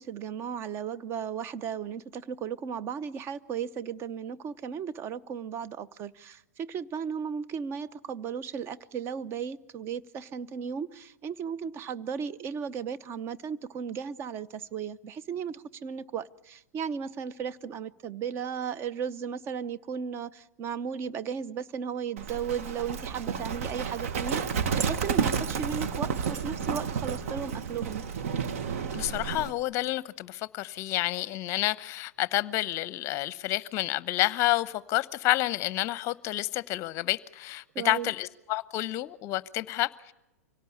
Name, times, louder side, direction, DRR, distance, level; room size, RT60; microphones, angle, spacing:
voice 1, 0.0-28.0 37.7-38.1, right 7 dB, 30° right, 0.8 m, -35 dB
Livestock farm animals working animals, 22.2-29.5, right 6 dB, 60° right, 1.5 m, -31 dB
voice 2, 28.9-40.1, left 16 dB, 35° left, 0.8 m, -29 dB
25.0 x 17.5 x 8.6 m
hypercardioid pair, 110°, 8 cm